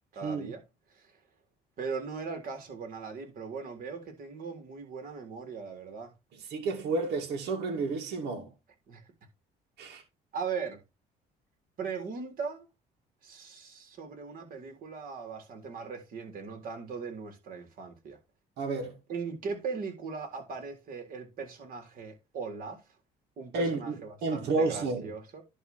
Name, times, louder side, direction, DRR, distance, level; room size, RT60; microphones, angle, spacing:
voice 1, 0.1-0.6 0.9-1.1 1.8-6.1 8.9-9.0 10.3-10.8 11.8-12.7 13.2-18.2 19.1-22.8 23.4-25.4, right 5 dB, 55° right, 3.7 m, -39 dB
voice 2, 6.5-8.5 9.8-10.0 18.6-19.0 23.5-23.9 24.2-25.0, right 3 dB, 80° right, 2.4 m, -31 dB
11.0 x 3.7 x 6.2 m
cardioid pair, 110°, 17 cm